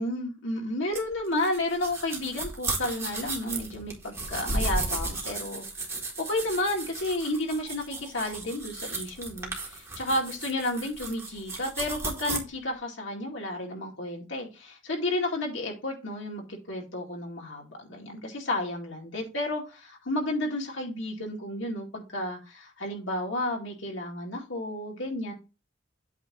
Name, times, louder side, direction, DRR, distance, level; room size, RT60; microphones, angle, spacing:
voice 1, 0.0-5.6 6.2-25.3, left 1 dB, 80° left, 2.2 m, -32 dB
sound 1, 0.9-12.4, right 2 dB, 15° right, 1.6 m, -34 dB
8.3 x 2.9 x 6.2 m
head